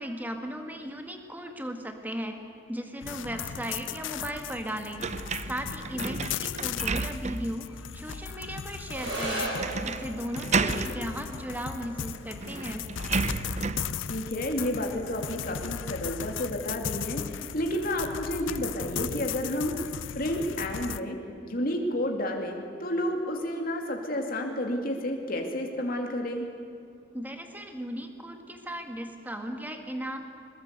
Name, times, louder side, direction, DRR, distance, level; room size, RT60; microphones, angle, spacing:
voice 1, 0.0-2.4 2.7-5.0 5.5-12.9 27.1-30.2, equal, 10° right, 5 dB, 2.0 m, -36 dB
sound 1, 3.0-21.0, left 8 dB, 90° left, 0.6 m, -37 dB
sound 2, 5.0-7.6 8.1-8.2 9.6-10.1 10.3-11.0 12.0-12.1 12.4-13.9, right 4 dB, 35° right, 0.7 m, -31 dB
sound 3, 8.8-17.8, right 2 dB, 85° right, 7.6 m, -40 dB
voice 2, 10.6-10.9 14.1-19.9 20.1-21.2 21.4-26.5, left 1 dB, 50° left, 2 dB, 2.7 m, -31 dB
22.0 x 21.0 x 8.3 m, 2.4 s
head